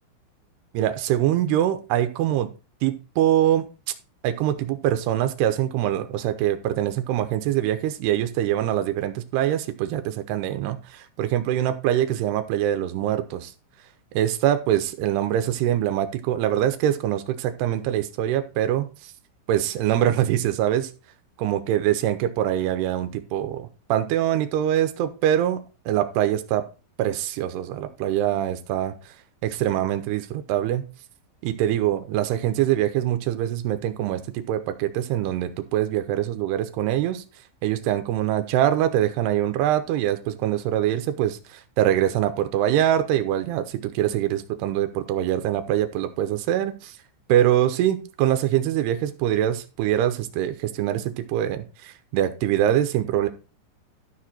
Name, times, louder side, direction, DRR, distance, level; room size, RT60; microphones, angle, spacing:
voice 1, 0.7-2.5 2.8-3.7 4.2-13.5 14.1-18.9 19.5-20.9 21.4-26.6 27.0-29.0 29.4-30.8 31.4-34.2 34.5-37.2 37.6-46.9 47.3-51.0 51.3-53.3, right 12 dB, 75° right, 8 dB, 2.6 m, -24 dB
12.5 x 4.8 x 4.3 m, 0.32 s
omnidirectional pair, 5.4 m